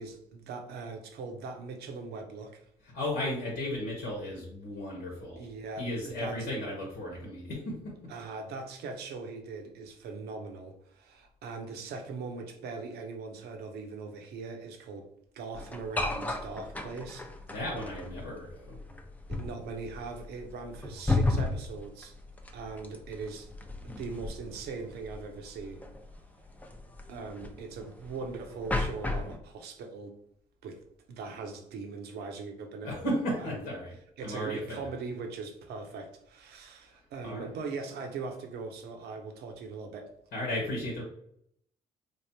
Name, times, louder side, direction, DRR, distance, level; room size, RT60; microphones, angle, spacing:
voice 1, 0.0-2.6 5.4-6.5 8.1-15.1 15.3-17.3 19.3-22.1 22.5-23.5 23.8-25.8 27.1-30.1 30.6-30.8 31.1-32.9 33.4-33.6 34.2-40.1, right 4 dB, 70° right, 0.7 m, -40 dB
voice 2, 2.9-5.4 5.8-7.9 17.5-18.8 32.8-33.9 34.2-34.9 37.2-37.5 40.3-41.0, left 1 dB, 75° left, 1.1 m, -34 dB
sound 1, 15.5-29.4, left 2 dB, 10° left, 0.5 m, -34 dB
3.4 x 2.4 x 2.8 m
hypercardioid pair, 55°, 17 cm